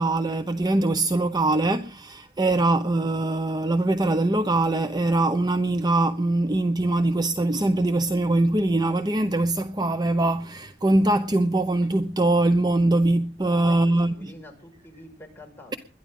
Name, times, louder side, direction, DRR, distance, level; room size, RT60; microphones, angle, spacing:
voice 1, 0.0-14.3, right 2 dB, 20° right, 0.8 m, -22 dB
voice 2, 13.4-15.8, left 2 dB, 10° left, 5.6 m, -46 dB
21.5 x 12.5 x 3.7 m
head